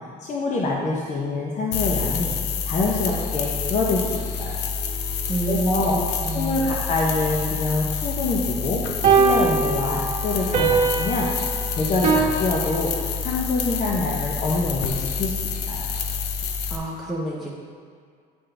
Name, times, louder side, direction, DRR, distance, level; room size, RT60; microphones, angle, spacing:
voice 1, 0.2-2.3 2.6-4.6 5.5-6.0 6.3-8.8 9.1-11.3 11.7-15.9, left 2 dB, 45° left, -2 dB, 0.8 m, -25 dB
sound 1, 1.7-16.8, left 6 dB, 80° left, 0.6 m, -28 dB
sound 2, 4.8-4.9 9.0-12.2, right 5 dB, 50° right, 1.1 m, -22 dB
voice 2, 5.3-6.7 16.7-17.5, right 2 dB, ahead, -5 dB, 0.8 m, -28 dB
9.5 x 3.9 x 3.3 m, 2.1 s
cardioid pair, 110°, 17 cm